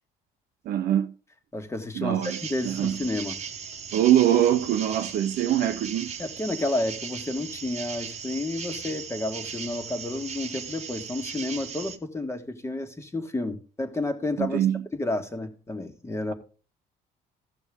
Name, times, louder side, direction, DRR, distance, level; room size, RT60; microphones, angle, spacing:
voice 1, 0.7-1.1 2.0-2.4 2.6-3.0 3.9-6.1 14.4-14.8, right 11 dB, 65° right, 0.7 m, -23 dB
voice 2, 1.5-2.2 2.5-3.4 6.2-14.6 14.9-16.3, left 2 dB, 15° left, 1.6 m, -31 dB
sound 1, 2.2-12.0, right 7 dB, 40° right, 1.1 m, -38 dB
16.0 x 6.2 x 3.6 m
cardioid pair, 110°, 17 cm